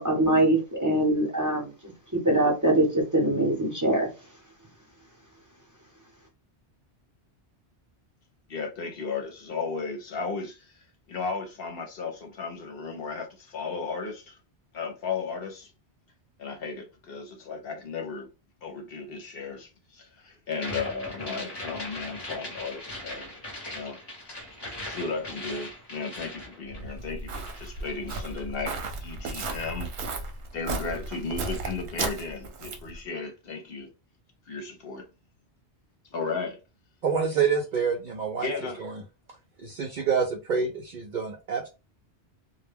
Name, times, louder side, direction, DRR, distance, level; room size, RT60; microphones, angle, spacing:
voice 1, 0.0-4.1, right 1 dB, 20° right, 0.7 m, -23 dB
voice 2, 8.5-10.8 11.1-14.4 14.7-15.7 16.4-18.3 18.6-23.3 23.7-24.0 24.8-28.7 29.0-30.2 30.5-33.9 34.5-35.1 36.1-36.6 38.4-38.8, left 4 dB, 60° left, 0.8 m, -35 dB
sound 1, 20.5-27.1 27.3-28.3, left 1 dB, 25° left, 0.7 m, -39 dB
Walk footsteps, 26.7-33.0, right 3 dB, 75° right, 0.9 m, -35 dB
voice 3, 37.0-38.5 38.8-39.0 39.6-41.7, right 6 dB, 60° right, 0.5 m, -27 dB
2.1 x 2.1 x 3.3 m
omnidirectional pair, 1.1 m